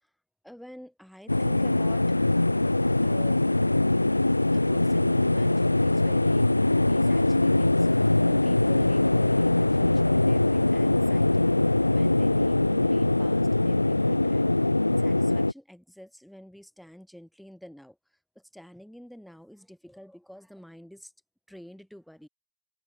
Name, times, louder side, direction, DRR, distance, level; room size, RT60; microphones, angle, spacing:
voice 1, 0.4-2.1 3.0-3.4 4.5-11.5 11.9-14.7 15.0-21.1 21.5-22.3, equal, ahead, 5.0 m, -48 dB
sound 1, 1.3-15.5, left 2 dB, 85° left, 0.4 m, -22 dB
open air
figure-of-eight pair, 90°, 0 cm